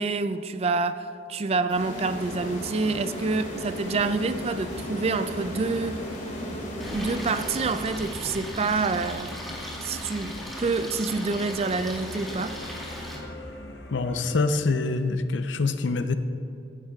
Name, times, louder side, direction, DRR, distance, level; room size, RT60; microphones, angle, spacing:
voice 1, 0.0-6.0 6.9-9.3 9.8-10.3 10.6-12.6, right 3 dB, 35° right, 0.3 m, -27 dB
sound 1, 1.7-8.3, equal, 45° left, 2.3 m, -35 dB
sound 2, 4.4-14.5, left 1 dB, 65° left, 0.9 m, -41 dB
Stream, 6.8-13.2, equal, ahead, 1.9 m, -38 dB
voice 2, 13.9-16.1, left 3 dB, 90° left, 0.6 m, -25 dB
15.0 x 10.0 x 2.4 m
head